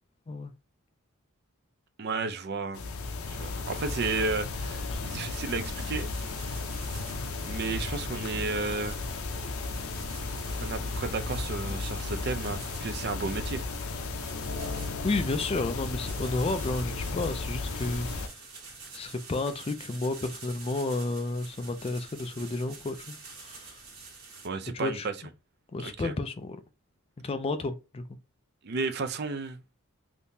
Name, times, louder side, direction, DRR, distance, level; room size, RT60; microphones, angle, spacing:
voice 1, 2.0-2.8 3.3-6.1 7.4-9.0 10.6-13.6 24.4-25.1 25.8-26.1 28.6-29.6, right 4 dB, 50° right, 0.4 m, -33 dB
sound 1, 2.7-18.3, left 3 dB, 80° left, 0.6 m, -34 dB
sound 2, 5.4-24.5, right 4 dB, 85° right, 1.4 m, -49 dB
voice 2, 15.0-18.3 18.9-23.2 23.4-23.8 24.7-25.1 25.7-26.6 27.2-28.0, left 2 dB, 25° left, 0.3 m, -31 dB
3.5 x 2.8 x 2.6 m
head